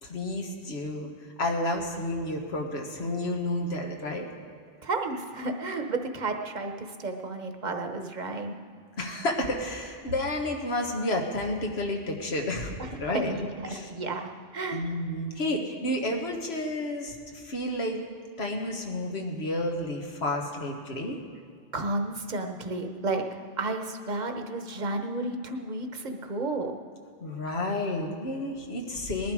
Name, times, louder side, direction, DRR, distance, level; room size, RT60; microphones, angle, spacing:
voice 1, 0.0-1.1 1.4-4.3 9.0-13.3 13.7-13.9 14.7-18.0 18.4-21.2 27.2-29.3, left 1 dB, 90° left, 2 dB, 1.7 m, -31 dB
voice 2, 4.8-8.6 12.8-12.9 13.1-14.2 14.5-14.9 21.7-23.2 23.6-26.8, right 2 dB, 45° right, 5 dB, 1.1 m, -32 dB
19.5 x 11.5 x 4.8 m, 2.1 s
omnidirectional pair, 1.0 m